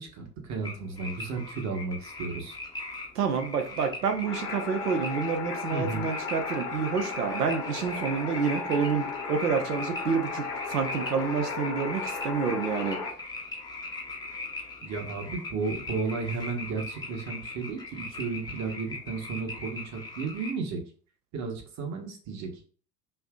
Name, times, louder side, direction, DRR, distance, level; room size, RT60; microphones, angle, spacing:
voice 1, 0.0-2.6 5.7-6.1 14.8-20.8 21.3-22.5, right 4 dB, 35° right, 4 dB, 1.1 m, -33 dB
sound 1, 0.6-20.5, left 3 dB, 10° left, 0.7 m, -40 dB
voice 2, 3.1-13.0, right 6 dB, 75° right, 6 dB, 0.9 m, -28 dB
sound 2, 4.2-13.1, left 4 dB, 80° left, 1.1 m, -35 dB
5.5 x 2.7 x 2.3 m, 0.41 s
figure-of-eight pair, 70°, 47 cm